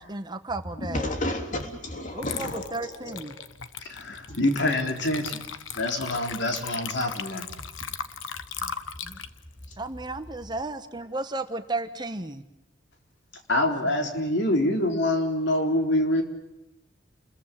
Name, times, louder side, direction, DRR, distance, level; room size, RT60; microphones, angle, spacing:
voice 1, 0.0-1.0 2.1-3.3 8.6-8.7 9.0-9.2 9.8-12.4, right 2 dB, 25° right, 8 dB, 1.2 m, -34 dB
voice 2, 0.7-3.5 4.0-4.4 7.6-7.7 9.7-9.8, left 1 dB, 40° left, 4 dB, 3.3 m, -33 dB
Water / Liquid, 1.6-1.8 2.2-10.7, left 7 dB, 90° left, 1.3 m, -38 dB
voice 3, 3.9-5.4 5.8-7.5 13.5-16.2, left 1 dB, 65° left, 4 dB, 3.7 m, -25 dB
29.5 x 21.5 x 7.5 m, 0.91 s
head